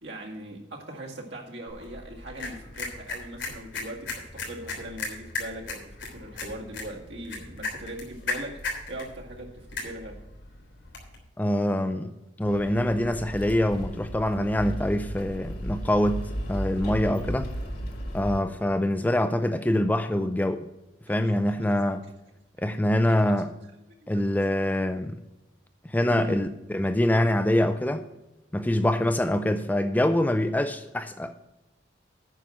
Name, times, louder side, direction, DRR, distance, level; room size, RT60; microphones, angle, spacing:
voice 1, 0.0-10.2 21.1-21.8 22.6-23.4 24.0-24.4 26.1-26.5, right 1 dB, 70° right, 1.9 m, -41 dB
sound 1, 1.7-11.2, left 3 dB, 85° left, 3.5 m, -37 dB
voice 2, 11.4-12.1 12.4-17.5 18.1-20.7 21.1-22.0 22.6-23.5 24.1-25.2 25.8-28.0 28.5-31.4, left 1 dB, 10° left, 0.4 m, -25 dB
sound 2, 12.4-18.4, equal, 55° left, 1.7 m, -34 dB
9.2 x 5.9 x 7.4 m
head